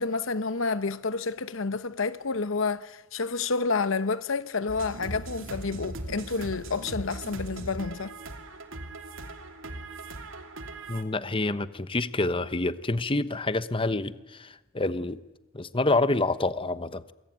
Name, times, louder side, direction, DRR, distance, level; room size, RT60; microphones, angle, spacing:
voice 1, 0.0-8.1, left 4 dB, 65° left, 1.0 m, -29 dB
sound 1, 4.7-11.0, right 2 dB, 65° right, 2.9 m, -39 dB
voice 2, 10.9-15.2 15.5-17.1, left 2 dB, 25° left, 1.0 m, -27 dB
27.0 x 22.5 x 9.5 m
head